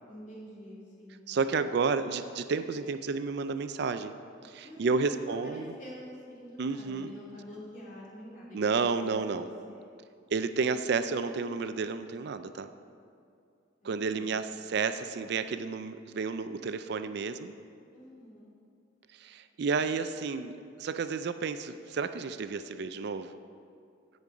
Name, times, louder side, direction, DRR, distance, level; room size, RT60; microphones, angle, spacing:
voice 1, 0.1-1.3 4.6-9.9 13.8-14.4 17.9-18.5, equal, 45° left, -5 dB, 2.8 m, -47 dB
voice 2, 1.3-4.1 4.4-5.7 6.6-7.1 8.5-9.5 10.3-12.7 13.8-17.5 19.2-23.4, right 4 dB, 60° right, 11 dB, 0.4 m, -31 dB
15.5 x 5.3 x 4.8 m, 2.4 s
head